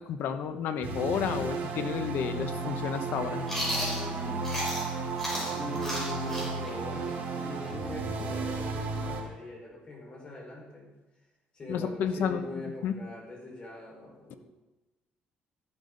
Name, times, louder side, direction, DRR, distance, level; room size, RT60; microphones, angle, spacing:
voice 1, 0.0-3.5 11.7-12.4 12.8-13.0, left 7 dB, 75° left, 9 dB, 1.0 m, -31 dB
sound 1, 0.8-9.2, right 3 dB, 65° right, 3.5 m, -33 dB
Chewing mastication, 3.5-4.9 5.2-8.8, equal, 10° left, 5.4 m, -34 dB
voice 2, 5.5-10.9 11.5-14.4, left 2 dB, 30° left, -2 dB, 5.1 m, -42 dB
14.0 x 12.0 x 4.0 m, 1.1 s
cardioid pair, 130°, 3 cm